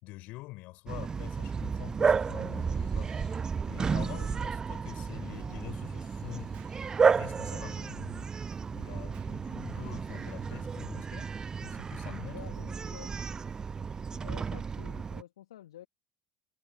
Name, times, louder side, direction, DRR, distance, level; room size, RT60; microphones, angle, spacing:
voice 1, 0.0-6.7 7.0-8.3 8.7-12.7, left 21 dB, 55° left, 4.4 m, -46 dB
Bark, 0.9-15.2, right 5 dB, 20° right, 0.5 m, -32 dB
sound 1, 2.3-3.5 5.9-7.1 9.6-10.7, left 7 dB, 30° left, 3.6 m, -58 dB
Explosion, 6.5-6.9 9.1-9.4, right 14 dB, 45° right, 2.8 m, -60 dB
voice 2, 12.3-13.1 14.1-15.9, left 12 dB, 70° left, 2.0 m, -49 dB
figure-of-eight pair, 75°, 3 cm